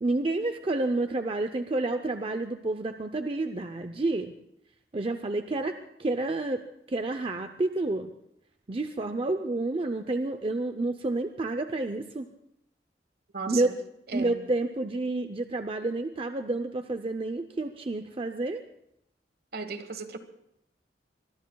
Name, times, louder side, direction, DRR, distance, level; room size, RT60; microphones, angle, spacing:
voice 1, 0.0-4.3 4.9-6.6 6.9-8.1 8.7-12.2 13.5-13.7 14.1-18.6, right 2 dB, 30° right, 8 dB, 0.6 m, -29 dB
voice 2, 13.3-13.7 14.1-14.4 19.5-20.2, right 4 dB, 60° right, 9 dB, 1.3 m, -35 dB
25.0 x 22.5 x 2.3 m, 0.78 s
head